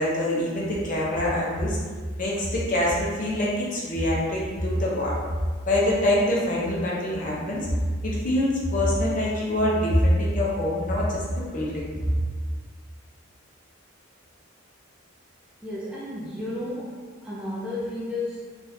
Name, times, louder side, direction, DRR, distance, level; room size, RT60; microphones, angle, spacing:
voice 1, 0.0-1.8 2.2-5.1 5.7-7.7 8.0-11.8, left 1 dB, 40° left, -5 dB, 0.7 m, -24 dB
voice 2, 15.6-18.6, left 1 dB, 5° right, -8 dB, 0.3 m, -33 dB
3.7 x 2.5 x 2.7 m, 1.5 s
head